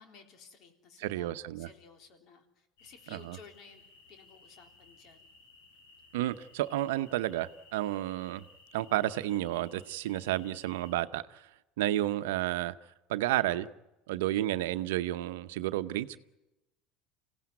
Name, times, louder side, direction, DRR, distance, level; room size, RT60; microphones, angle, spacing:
voice 1, 0.0-3.8 4.1-5.3, left 5 dB, 55° left, 3.6 m, -55 dB
voice 2, 1.0-1.7 3.1-3.4 6.1-8.4 8.7-11.5 11.8-12.7 13.1-13.7 14.1-16.2, right 14 dB, 85° right, 0.8 m, -31 dB
sound 1, 2.8-10.9, left 3 dB, 85° left, 6.2 m, -59 dB
25.5 x 17.0 x 9.5 m
supercardioid pair, 90°, 0 cm